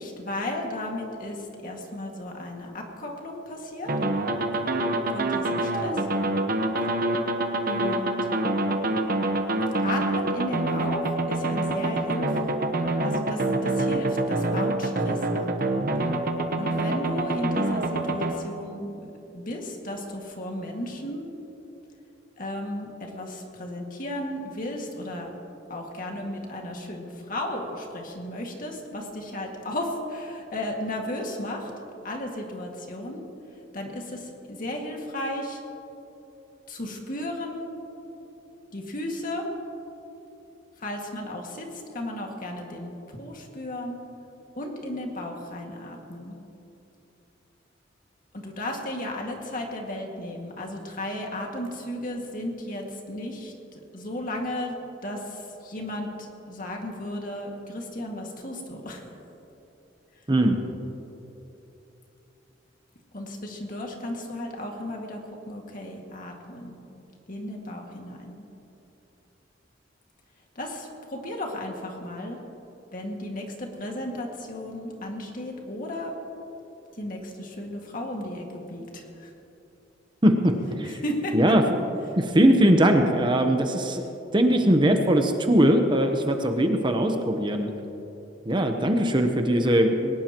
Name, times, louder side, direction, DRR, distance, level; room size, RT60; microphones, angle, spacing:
voice 1, 0.0-3.9 5.1-6.1 7.7-8.1 9.8-12.4 13.0-15.5 16.6-19.1 19.3-21.3 22.4-25.3 25.7-31.7 32.0-33.2 33.7-35.6 36.7-37.7 38.7-39.5 40.8-44.0 44.6-46.4 48.3-54.8 55.0-59.0 63.1-65.2 65.5-66.8 67.3-68.4 70.6-72.4 72.9-76.2 76.9-79.3 80.8-81.3, left 1 dB, 50° left, 1 dB, 2.1 m, -34 dB
sound 1, 3.9-18.3, right 2 dB, 50° right, 1.0 m, -26 dB
voice 2, 80.2-81.0 81.3-81.6 82.2-84.0 84.3-87.7 88.4-90.2, right 1 dB, 25° right, 5 dB, 0.9 m, -21 dB
21.0 x 18.5 x 3.0 m, 3.0 s
head